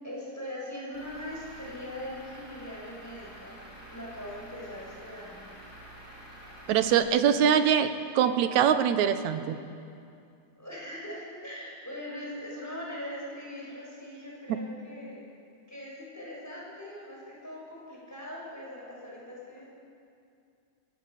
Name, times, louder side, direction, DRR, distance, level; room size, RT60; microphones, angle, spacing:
voice 1, 0.0-3.6 3.9-5.5 10.6-15.2 15.7-19.7, left 1 dB, 5° left, -5 dB, 6.6 m, -41 dB
Truck / Idling, 0.9-7.0, equal, 25° right, 7.7 m, -48 dB
voice 2, 6.7-9.6, right 8 dB, 80° right, 10 dB, 2.3 m, -23 dB
23.5 x 17.0 x 7.8 m, 2.5 s
omnidirectional pair, 3.3 m